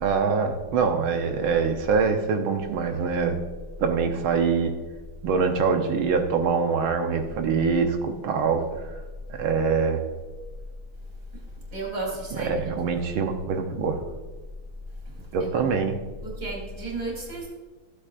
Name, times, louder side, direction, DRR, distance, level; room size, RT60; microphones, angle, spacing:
voice 1, 0.0-3.4 3.8-4.7 5.2-8.6 9.3-10.0 12.4-14.0 15.3-16.0, right 5 dB, 75° right, 5 dB, 1.7 m, -24 dB
voice 2, 11.7-13.3 15.1-15.5 16.2-17.5, right 2 dB, 35° right, -2 dB, 3.6 m, -34 dB
15.5 x 8.5 x 2.5 m, 1.3 s
omnidirectional pair, 2.3 m